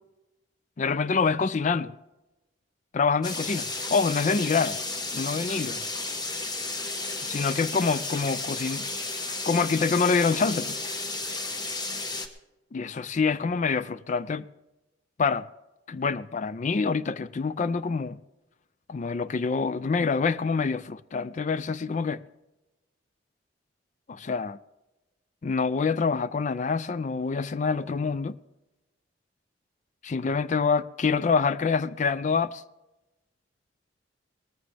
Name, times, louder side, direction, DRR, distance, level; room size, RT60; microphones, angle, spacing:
voice 1, 0.8-1.9 2.9-4.8 5.1-5.8 7.2-8.9 9.2-10.8 12.7-14.5 15.2-15.5 15.9-18.2 18.9-22.2 24.1-24.6 25.4-28.4 30.0-32.6, left 5 dB, 40° left, 0.4 m, -26 dB
sound 1, 3.2-12.3, left 3 dB, 20° left, 1.1 m, -33 dB
18.5 x 14.0 x 3.4 m
head